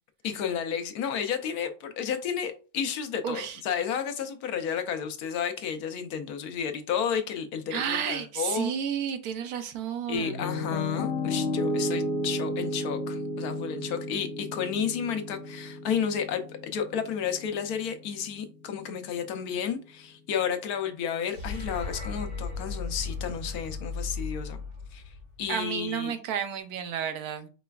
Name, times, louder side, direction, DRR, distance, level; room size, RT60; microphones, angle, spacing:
voice 1, 0.2-8.7 10.1-24.6 24.9-25.0 25.4-26.1, left 7 dB, 85° left, 1.2 m, -32 dB
voice 2, 3.2-3.6 7.7-10.5 25.5-27.5, right 8 dB, 90° right, 1.2 m, -31 dB
Piano, 10.1-18.2, left 1 dB, 50° left, 0.9 m, -33 dB
sound 1, 21.2-25.6, left 4 dB, 70° right, 2.8 m, -36 dB
4.8 x 3.2 x 2.3 m
omnidirectional pair, 1.5 m